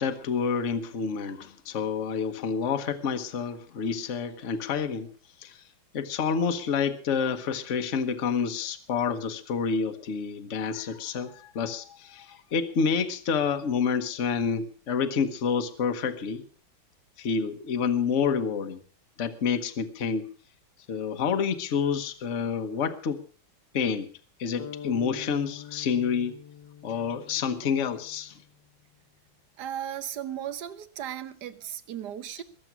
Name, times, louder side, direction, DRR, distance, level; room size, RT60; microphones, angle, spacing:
voice 1, 0.0-5.1 5.4-5.6 5.9-16.4 17.2-18.8 19.2-20.3 20.9-23.2 23.7-24.1 24.4-26.3 26.8-28.4, left 6 dB, 45° left, 8 dB, 1.3 m, -28 dB
sound 1, 24.6-28.5, left 9 dB, 65° left, 1.6 m, -45 dB
voice 2, 29.6-32.4, right 10 dB, 60° right, 14 dB, 1.4 m, -36 dB
21.5 x 7.9 x 6.0 m, 0.42 s
omnidirectional pair, 2.2 m